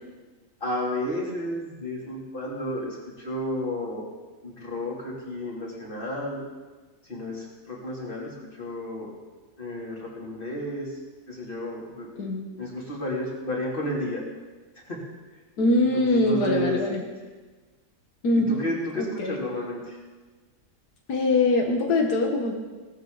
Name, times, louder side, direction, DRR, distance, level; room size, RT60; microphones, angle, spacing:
voice 1, 0.6-4.1 4.4-6.4 7.1-9.1 9.6-10.9 11.3-12.1 12.6-14.2 14.9-15.0 15.9-17.0 18.5-20.0, left 1 dB, 35° left, -4 dB, 3.2 m, -32 dB
voice 2, 12.2-12.5 15.6-17.0 18.2-18.6 19.0-19.4 21.1-22.5, left 2 dB, 85° left, 2 dB, 1.9 m, -23 dB
18.0 x 13.5 x 4.0 m, 1.3 s
omnidirectional pair, 1.6 m